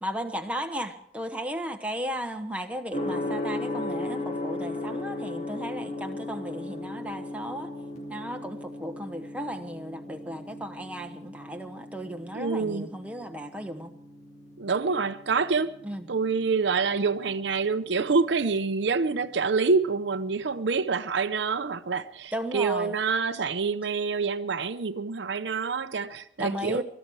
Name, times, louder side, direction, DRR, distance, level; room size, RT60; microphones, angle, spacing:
voice 1, 0.0-7.7 8.1-13.9 15.8-16.1 22.3-23.0 26.4-26.8, equal, 5° right, 1.1 m, -35 dB
Gong, 2.9-20.8, left 2 dB, 40° left, 2.2 m, -38 dB
voice 2, 12.3-12.9 14.6-15.7 16.1-26.8, right 4 dB, 70° right, 0.6 m, -27 dB
21.5 x 12.5 x 4.7 m
head